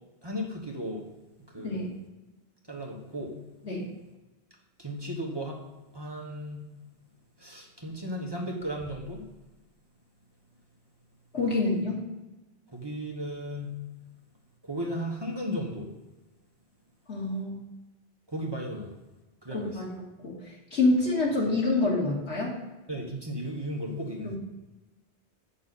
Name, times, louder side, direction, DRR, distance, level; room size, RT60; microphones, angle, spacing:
voice 1, 0.2-1.1 1.5-1.8 2.7-3.3 4.8-5.6 5.9-6.7 7.4-9.2 12.7-13.8 14.6-15.9 18.3-18.9 19.4-19.8 22.9-24.4, equal, 25° right, -1 dB, 1.3 m, -35 dB
voice 2, 1.6-1.9 3.6-3.9 11.3-12.1 17.1-17.6 19.5-20.4 20.7-22.6 24.2-24.4, left 2 dB, 90° left, -3 dB, 2.4 m, -27 dB
8.4 x 6.9 x 4.1 m, 1.1 s
omnidirectional pair, 1.1 m